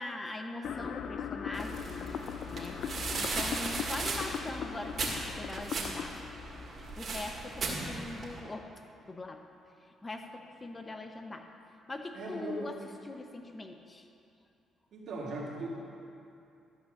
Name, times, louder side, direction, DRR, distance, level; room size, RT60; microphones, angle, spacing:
voice 1, 0.0-2.2 2.5-2.9 3.2-6.2 7.0-8.7 9.1-9.4 10.0-11.5 11.9-14.1, left 2 dB, 25° left, 5 dB, 0.8 m, -42 dB
sound 1, 0.6-7.7, left 7 dB, 65° left, 0.4 m, -40 dB
sound 2, 1.5-8.4, right 3 dB, 50° right, 2.0 m, -37 dB
voice 2, 12.1-12.7 14.9-15.7, right 2 dB, 70° right, -4 dB, 2.5 m, -38 dB
13.0 x 5.5 x 6.5 m, 2.6 s
cardioid pair, 90°, 0 cm